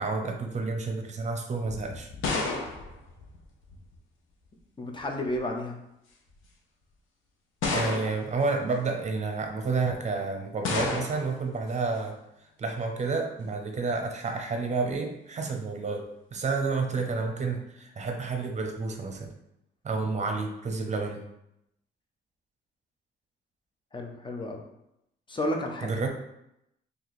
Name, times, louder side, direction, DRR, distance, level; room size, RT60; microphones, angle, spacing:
voice 1, 0.0-2.1 7.7-12.2 12.6-16.0 16.3-19.3 19.8-21.2 25.8-26.1, right 4 dB, 35° right, 4 dB, 0.7 m, -30 dB
sound 1, 1.6-4.0 5.0-5.5 6.3-6.4 7.6-8.4 10.6-11.4, left 3 dB, 85° left, 0.8 m, -31 dB
voice 2, 4.8-5.8 23.9-24.6 25.3-25.9, left 1 dB, 25° left, 2 dB, 0.7 m, -31 dB
2.9 x 2.7 x 4.1 m, 0.82 s
cardioid pair, 90°, 20 cm